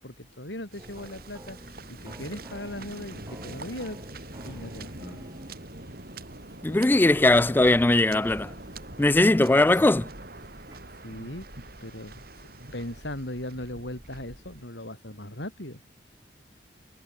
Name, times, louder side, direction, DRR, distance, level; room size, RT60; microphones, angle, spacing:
voice 1, 0.0-5.2 11.0-11.4 11.8-12.2 12.7-15.8, left 1 dB, 65° left, 6.5 m, -38 dB
Waves surf, 0.7-14.7, right 2 dB, 50° right, 5.7 m, -44 dB
sound 1, 0.8-10.8, right 1 dB, 20° right, 4.3 m, -49 dB
voice 2, 6.6-8.5 9.0-10.1, left 2 dB, 10° left, 0.3 m, -20 dB
head